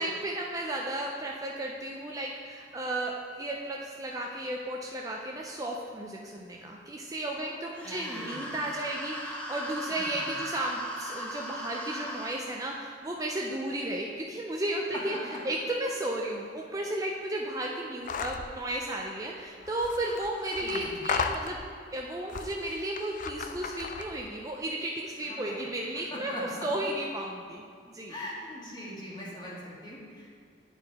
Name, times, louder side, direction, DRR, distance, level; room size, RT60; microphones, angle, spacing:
voice 1, 0.0-15.2 15.4-21.6 21.9-28.1, right 1 dB, 20° right, -1 dB, 0.4 m, -34 dB
voice 2, 7.4-8.6 9.9-10.4 15.1-15.2 20.6-21.0 25.2-25.6 26.1-26.6 28.1-30.3, left 1 dB, 25° left, -6 dB, 1.7 m, -41 dB
sound 1, 7.8-12.4, equal, 10° left, 0.8 m, -38 dB
sound 2, 18.0-18.5 19.6-21.8 22.3-24.3, left 5 dB, 45° left, 0.4 m, -35 dB
9.8 x 4.4 x 4.1 m, 2.2 s
head